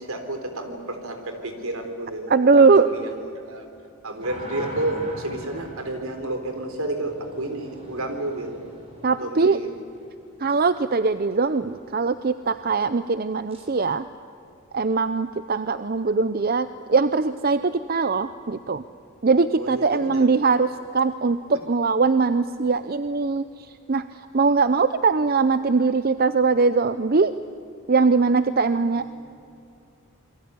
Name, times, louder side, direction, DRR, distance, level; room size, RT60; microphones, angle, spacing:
voice 1, 0.0-3.7 4.0-8.6 9.2-9.7 19.6-20.3 28.9-29.2, right 1 dB, 75° right, 6 dB, 3.9 m, -31 dB
voice 2, 2.3-2.9 9.0-9.6 10.4-14.1 14.7-18.8 19.2-23.4 23.9-24.0 24.3-27.3 27.9-29.2, right 4 dB, 40° right, 12 dB, 0.6 m, -21 dB
sound 1, 4.2-10.0 13.5-13.7, equal, 25° right, 6.6 m, -41 dB
27.0 x 22.0 x 9.6 m, 2.6 s
head